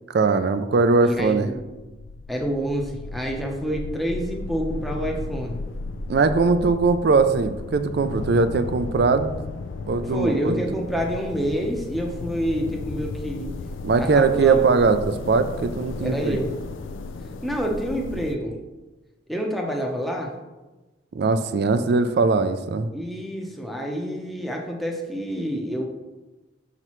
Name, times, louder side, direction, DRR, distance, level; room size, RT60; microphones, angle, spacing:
voice 1, 0.1-1.5 6.1-9.4 9.9-10.6 13.8-16.4 21.1-22.9, right 4 dB, 55° right, 10 dB, 0.3 m, -20 dB
voice 2, 1.0-1.6 2.3-5.6 10.1-13.5 14.0-14.6 16.0-16.5 17.4-18.6 19.3-20.3 22.9-25.9, equal, ahead, 0 dB, 0.7 m, -27 dB
sound 1, 1.2-18.4, left 3 dB, 80° left, 0.4 m, -35 dB
6.6 x 5.8 x 3.1 m, 1.1 s
head